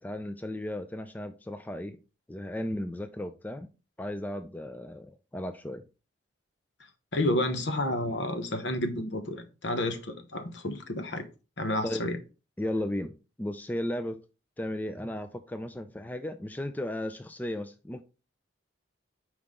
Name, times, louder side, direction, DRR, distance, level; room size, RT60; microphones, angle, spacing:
voice 1, 0.0-2.0 2.3-3.7 4.0-5.8 11.8-12.1 12.6-14.2 14.6-18.0, left 1 dB, 10° left, 0.3 m, -35 dB
voice 2, 7.1-11.2 11.6-12.2, left 1 dB, 65° left, 1.0 m, -30 dB
5.6 x 4.8 x 3.7 m
head